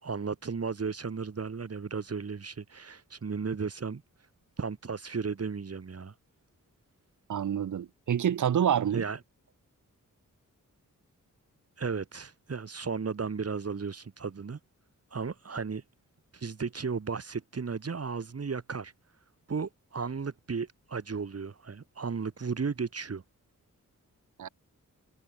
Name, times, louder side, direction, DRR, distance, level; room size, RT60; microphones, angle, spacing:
voice 1, 0.0-4.0 4.6-6.1 8.9-9.2 11.8-14.6 15.1-15.8 16.3-18.9 19.5-23.2, right 5 dB, 45° right, 3.0 m, -34 dB
voice 2, 7.3-9.0 24.4-24.5, right 9 dB, 65° right, 0.8 m, -27 dB
wide cardioid pair, 135°, 33 cm